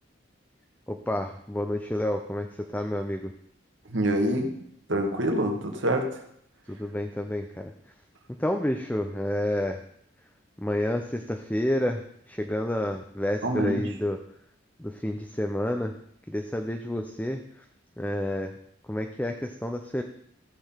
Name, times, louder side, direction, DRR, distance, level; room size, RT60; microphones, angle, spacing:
voice 1, 0.9-3.3 6.7-7.7 8.4-9.8 10.6-12.0 12.3-14.2 14.8-16.0 16.3-17.6 18.0-18.5 18.9-20.0, left 1 dB, 10° left, 4 dB, 0.7 m, -29 dB
voice 2, 3.9-4.5 4.9-6.2 13.4-13.8, right 1 dB, 75° right, 3 dB, 2.0 m, -26 dB
15.0 x 7.0 x 5.8 m, 0.69 s
head